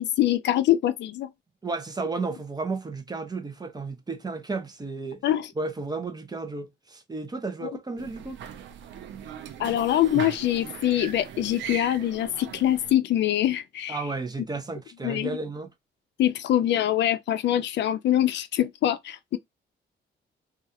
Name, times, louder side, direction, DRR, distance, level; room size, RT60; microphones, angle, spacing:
voice 1, 0.0-1.3 5.2-5.5 7.6-7.7 9.6-14.0 15.0-15.3 16.2-19.4, left 12 dB, 65° left, 0.4 m, -24 dB
voice 2, 1.6-5.2 5.6-8.4 13.9-15.7, right 3 dB, 20° right, 0.6 m, -33 dB
sound 1, 8.0-12.9, right 9 dB, 70° right, 0.5 m, -39 dB
2.3 x 2.3 x 2.7 m
cardioid pair, 90°, 20 cm